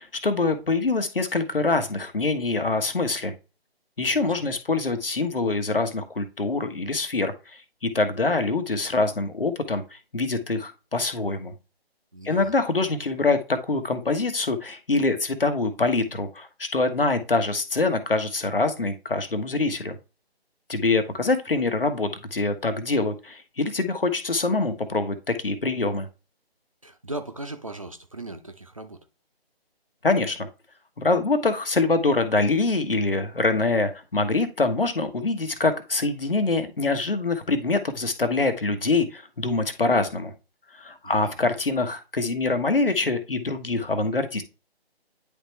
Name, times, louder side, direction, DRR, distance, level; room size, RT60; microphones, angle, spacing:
voice 1, 0.0-3.3 4.0-11.5 12.2-20.0 20.7-26.1 30.0-30.5 31.0-40.3 40.7-44.4, left 3 dB, 60° left, 1.3 m, -25 dB
voice 2, 4.1-4.5 12.1-12.5 26.8-29.0 41.0-41.3, right 2 dB, 35° right, 0.6 m, -38 dB
9.9 x 3.4 x 3.2 m
figure-of-eight pair, 155°, 31 cm